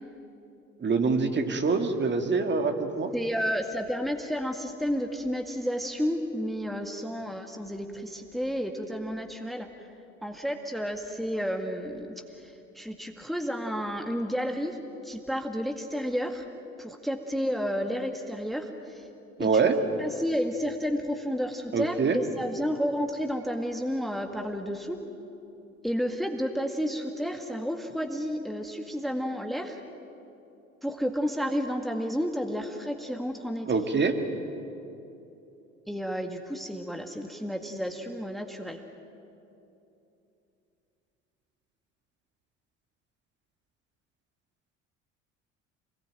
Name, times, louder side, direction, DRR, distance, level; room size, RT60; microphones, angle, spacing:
voice 1, 0.8-3.1 19.4-19.8 21.7-22.2 33.7-34.2, right 4 dB, 25° right, 5 dB, 2.3 m, -25 dB
voice 2, 3.1-9.7 10.2-12.1 12.4-14.8 15.0-16.5 16.8-19.1 19.4-19.5 20.0-25.0 25.8-29.8 30.8-33.7 35.9-38.8, equal, ahead, 4 dB, 2.0 m, -31 dB
28.0 x 20.5 x 9.2 m, 2.8 s
figure-of-eight pair, 60°, 39 cm